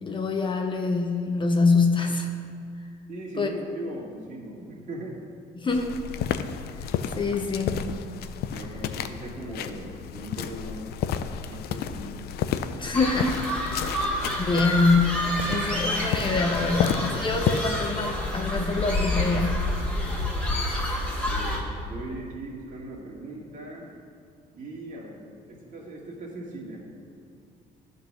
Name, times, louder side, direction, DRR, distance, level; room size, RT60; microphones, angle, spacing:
voice 1, 0.0-2.3 3.4-3.5 5.6-5.9 7.2-7.8 12.8-13.4 14.1-15.1 15.4-19.6, left 3 dB, 30° left, 4 dB, 0.7 m, -25 dB
voice 2, 3.1-5.2 8.5-10.9 11.5-12.2 13.8-13.9 21.2-23.9 24.5-25.2 25.5-26.8, right 1 dB, 50° right, -3 dB, 2.2 m, -39 dB
sound 1, 5.7-17.6, left 8 dB, 70° left, 0.5 m, -32 dB
sound 2, 12.9-21.6, left 1 dB, 5° left, 1.8 m, -28 dB
12.0 x 4.0 x 6.0 m, 2.3 s
cardioid pair, 110°, 17 cm